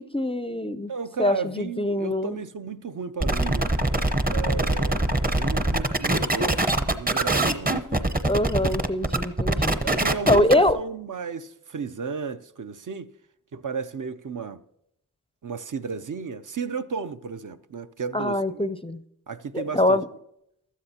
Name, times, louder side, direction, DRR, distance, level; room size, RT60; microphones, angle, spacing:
voice 1, 0.0-0.9 1.2-2.4 8.2-9.8 10.3-10.8 18.1-19.0 19.5-20.1, left 1 dB, 15° left, 0.5 m, -23 dB
voice 2, 0.9-3.7 4.3-5.1 5.4-7.8 9.8-13.1 13.5-14.6 15.4-18.7 19.3-20.0, right 5 dB, 50° right, 0.6 m, -34 dB
sound 1, 3.2-10.7, right 1 dB, 20° right, 0.8 m, -23 dB
16.0 x 12.5 x 2.8 m
cardioid pair, 40°, 40 cm